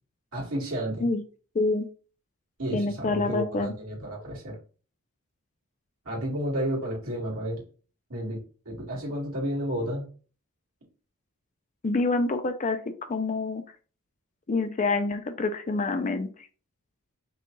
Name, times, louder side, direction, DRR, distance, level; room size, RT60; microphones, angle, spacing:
voice 1, 0.3-1.1 2.6-4.6 6.0-7.6 8.1-10.1, equal, 75° right, -4 dB, 2.3 m, -31 dB
voice 2, 1.5-1.9 2.7-3.7 11.8-13.6 14.5-16.3, left 3 dB, 35° left, 8 dB, 0.5 m, -27 dB
5.6 x 2.4 x 3.9 m, 0.39 s
head